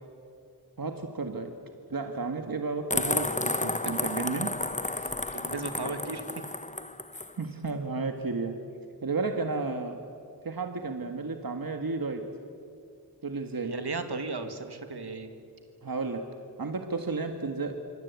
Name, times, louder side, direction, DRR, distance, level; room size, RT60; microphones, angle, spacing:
voice 1, 0.8-1.5 1.9-4.5 7.4-8.6 9.0-10.0 10.4-12.2 13.2-13.7 15.8-16.2 16.6-17.7, right 3 dB, 60° right, 5 dB, 1.8 m, -32 dB
sound 1, 2.9-7.3, left 2 dB, 20° left, 1.2 m, -31 dB
voice 2, 5.0-6.3 13.6-15.3, right 3 dB, 75° right, 7 dB, 2.3 m, -36 dB
26.0 x 25.0 x 8.4 m, 2.5 s
wide cardioid pair, 65°, 40 cm